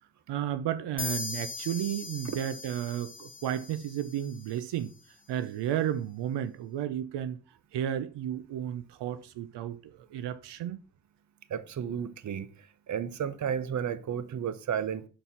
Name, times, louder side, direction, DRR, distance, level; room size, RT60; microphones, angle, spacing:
voice 1, 0.3-4.9 5.3-7.4 7.7-10.8, right 10 dB, 80° right, 0.6 m, -33 dB
sound 1, 1.0-4.6, left 4 dB, 20° left, 0.9 m, -40 dB
voice 2, 11.5-15.1, right 8 dB, 45° right, 0.7 m, -33 dB
5.5 x 4.2 x 5.7 m
cardioid pair, 75°, 41 cm